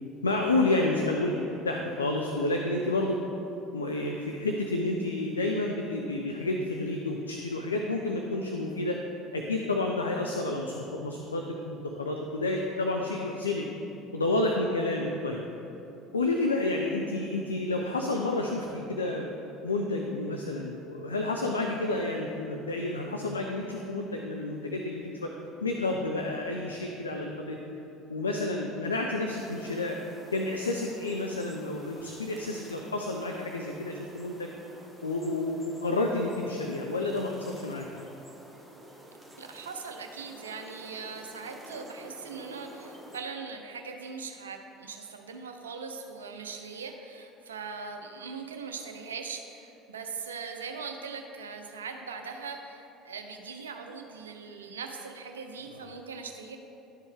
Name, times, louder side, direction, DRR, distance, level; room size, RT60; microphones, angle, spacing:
voice 1, 0.2-1.4 1.6-3.2 3.7-9.0 9.3-13.7 14.1-15.4 16.1-19.3 19.6-25.3 25.6-27.6 28.1-30.0 30.3-34.5 35.0-37.9, left 2 dB, 85° left, 2 dB, 0.4 m, -30 dB
sound 1, 29.4-43.2, right 1 dB, ahead, 1.2 m, -50 dB
voice 2, 39.4-56.6, right 5 dB, 80° right, 5 dB, 0.5 m, -40 dB
11.5 x 4.5 x 3.5 m, 2.9 s
figure-of-eight pair, 65°, 0 cm